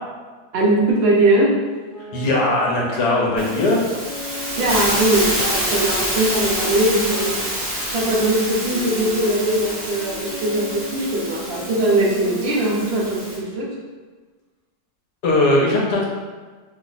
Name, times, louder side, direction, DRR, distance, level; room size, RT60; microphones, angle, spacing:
voice 1, 0.5-1.5 4.6-7.3 7.9-13.7, right 2 dB, 55° right, -3 dB, 0.6 m, -20 dB
sound 1, 1.7-7.4 7.9-13.5, equal, 40° left, 0.5 m, -36 dB
voice 2, 2.1-3.8 15.2-16.0, left 2 dB, 75° left, -3 dB, 1.2 m, -19 dB
Hiss, 3.4-13.4, equal, 10° right, 0.7 m, -27 dB
3.0 x 2.0 x 3.9 m, 1.4 s
omnidirectional pair, 1.7 m